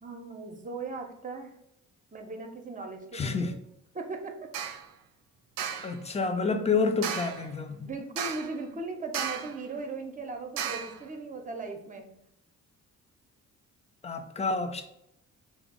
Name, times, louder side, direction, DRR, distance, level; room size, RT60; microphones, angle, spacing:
voice 1, 0.0-1.6 2.1-4.5 7.7-12.1, right 3 dB, 20° right, 0.7 m, -38 dB
voice 2, 3.1-3.5 5.8-7.8 14.0-14.8, left 4 dB, 15° left, 0.5 m, -28 dB
sound 1, 4.5-4.9 5.6-6.0 7.0-7.5 8.2-8.6 9.1-9.6 10.6-11.0, right 8 dB, 55° right, 0.5 m, -34 dB
3.3 x 2.0 x 3.6 m
hypercardioid pair, 40°, 41 cm